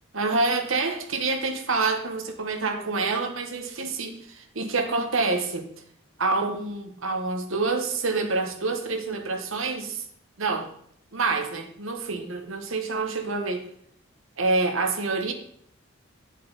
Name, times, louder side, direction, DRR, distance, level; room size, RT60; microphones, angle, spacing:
voice 1, 0.1-5.7 6.2-10.0 10.4-10.7 11.1-13.7 14.4-15.3, right 3 dB, 70° right, 5 dB, 1.2 m, -27 dB
8.3 x 7.4 x 4.0 m, 0.66 s
head